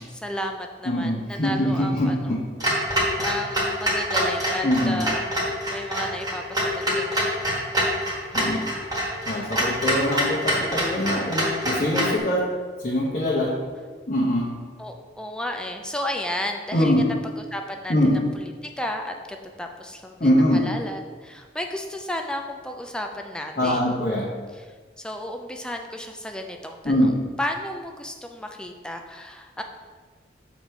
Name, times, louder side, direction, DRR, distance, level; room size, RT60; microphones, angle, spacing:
voice 1, 0.1-2.4 3.2-5.3 5.7-7.5 8.1-8.7 14.8-17.9 18.3-23.8 24.5-26.9 27.4-29.6, left 1 dB, 5° left, 3 dB, 0.4 m, -33 dB
voice 2, 0.8-2.4 4.6-5.1 8.3-8.6 9.3-12.4 12.8-13.5 14.1-14.5 16.7-17.0 17.9-18.2 20.2-20.6 23.6-24.3 26.8-27.2, left 1 dB, 45° left, -6 dB, 1.0 m, -23 dB
Clock, 2.6-12.2, equal, 20° right, 1.4 m, -25 dB
6.4 x 4.1 x 4.5 m, 1.5 s
head